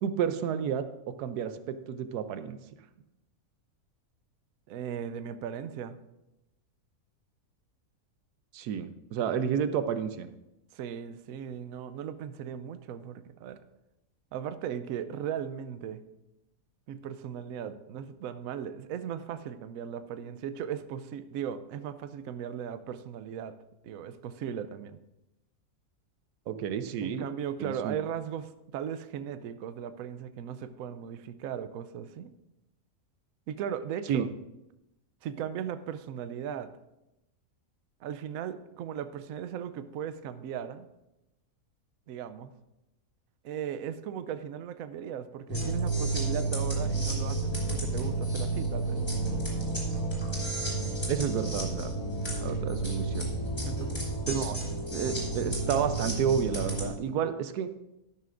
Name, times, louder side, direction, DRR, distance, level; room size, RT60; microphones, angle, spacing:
voice 1, 0.0-2.6 8.5-10.3 26.5-27.3 27.6-28.0 34.1-34.3 51.1-51.9 52.4-53.3 54.3-54.5 54.9-57.7, right 8 dB, 90° right, 11 dB, 1.2 m, -31 dB
voice 2, 4.7-6.0 10.7-13.6 14.3-16.0 16.9-23.6 23.8-25.0 27.0-32.3 33.5-34.3 35.2-36.7 38.0-40.9 42.1-42.5 43.4-49.0 53.6-54.6, right 8 dB, 70° right, 11 dB, 1.0 m, -37 dB
the insects, 45.5-56.9, right 2 dB, 15° left, 3.0 m, -31 dB
12.5 x 11.5 x 2.5 m, 0.92 s
omnidirectional pair, 1.6 m